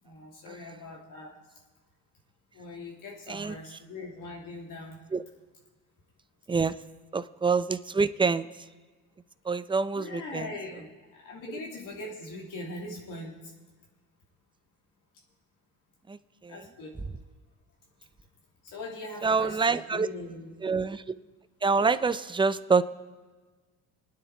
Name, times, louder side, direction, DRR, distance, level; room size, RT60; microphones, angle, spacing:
voice 1, 0.0-1.3 2.5-5.0 10.0-13.5 16.5-17.0 18.6-20.5, left 2 dB, 60° left, -2 dB, 3.2 m, -41 dB
voice 2, 3.3-3.8 5.1-5.2 6.5-6.8 7.1-8.5 9.4-10.5 11.5-11.6 16.1-16.7 19.2-20.1 20.6-21.1 21.6-22.8, right 4 dB, 15° right, 12 dB, 0.6 m, -27 dB
27.0 x 9.6 x 4.5 m, 1.4 s
cardioid pair, 100°, 36 cm